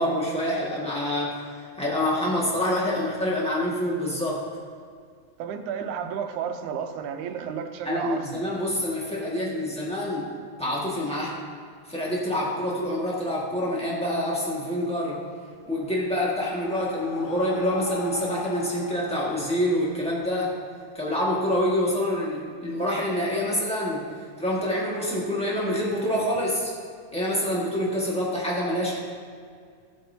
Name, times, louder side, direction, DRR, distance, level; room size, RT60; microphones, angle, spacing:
voice 1, 0.0-4.4 7.8-10.3 10.6-11.4 11.9-15.2 15.7-20.5 20.9-24.1 24.4-26.7 27.1-29.0, left 1 dB, 5° left, -5 dB, 1.0 m, -26 dB
voice 2, 5.4-8.4, right 7 dB, 90° right, 7 dB, 2.2 m, -32 dB
Breathing, 15.6-20.3, left 5 dB, 85° left, 2.2 m, -41 dB
16.5 x 7.7 x 2.8 m, 2.1 s
omnidirectional pair, 3.3 m